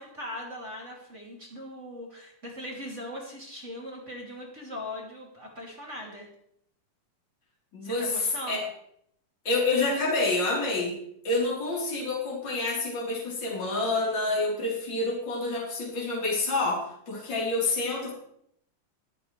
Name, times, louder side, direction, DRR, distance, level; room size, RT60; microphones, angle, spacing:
voice 1, 0.0-6.3 7.8-8.7, left 1 dB, 25° right, -3 dB, 2.4 m, -40 dB
voice 2, 7.7-8.6 9.4-11.0 11.2-18.1, left 2 dB, 35° left, -5 dB, 4.5 m, -28 dB
23.0 x 7.8 x 3.3 m, 0.70 s
omnidirectional pair, 3.7 m